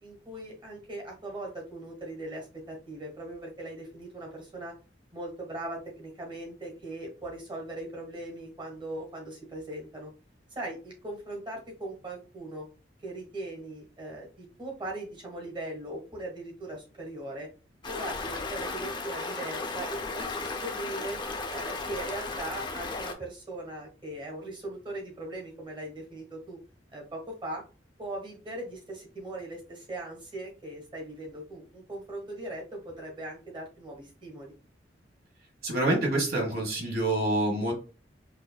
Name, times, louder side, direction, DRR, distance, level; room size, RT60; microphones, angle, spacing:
voice 1, 0.0-4.7 5.1-10.1 10.5-12.7 13.0-17.5 17.9-21.2 21.5-26.6 26.9-27.6 28.0-34.5, right 1 dB, 25° right, 0 dB, 1.4 m, -39 dB
Stream, 17.8-23.1, left 3 dB, 25° left, 0.5 m, -35 dB
voice 2, 35.6-37.7, right 1 dB, 55° right, 1 dB, 1.5 m, -27 dB
4.9 x 2.6 x 2.2 m, 0.34 s
head